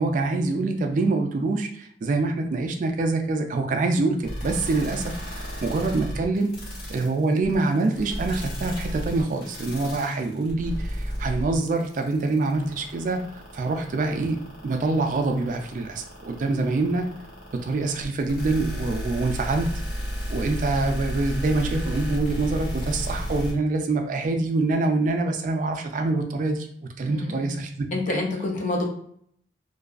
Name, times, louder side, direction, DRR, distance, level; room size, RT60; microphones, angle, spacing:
voice 1, 0.0-6.5 6.9-17.1 17.5-19.7 20.3-26.7 27.0-28.2, right 3 dB, 45° right, 5 dB, 0.3 m, -25 dB
sound 1, 4.2-23.5, equal, 60° left, 1.2 m, -32 dB
voice 2, 27.1-27.5 27.9-28.8, left 2 dB, 45° left, 1 dB, 0.5 m, -28 dB
2.6 x 2.3 x 2.4 m, 0.65 s
head